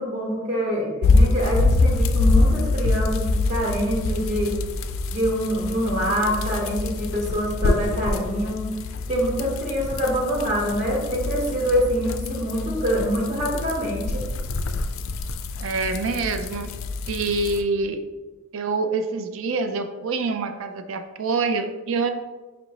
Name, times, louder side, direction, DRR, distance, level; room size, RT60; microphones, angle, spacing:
voice 1, 0.0-4.5 5.0-8.7 9.1-14.2, equal, 35° right, -3 dB, 1.0 m, -25 dB
sound 1, 1.0-17.6, left 3 dB, 70° left, 0.3 m, -25 dB
voice 2, 15.6-16.7 17.1-18.0 18.5-22.1, right 3 dB, 70° right, 8 dB, 0.4 m, -26 dB
5.1 x 2.7 x 2.8 m, 1.2 s
head